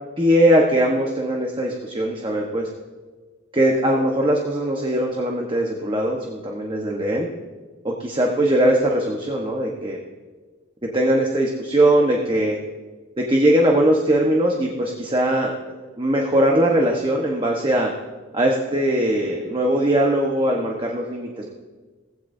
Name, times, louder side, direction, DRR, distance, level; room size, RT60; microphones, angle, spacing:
voice 1, 0.2-2.7 3.5-7.3 7.8-10.0 10.9-12.6 13.2-17.9 18.3-21.5, right 1 dB, 25° right, 0 dB, 1.2 m, -20 dB
19.5 x 16.0 x 2.8 m, 1.3 s
head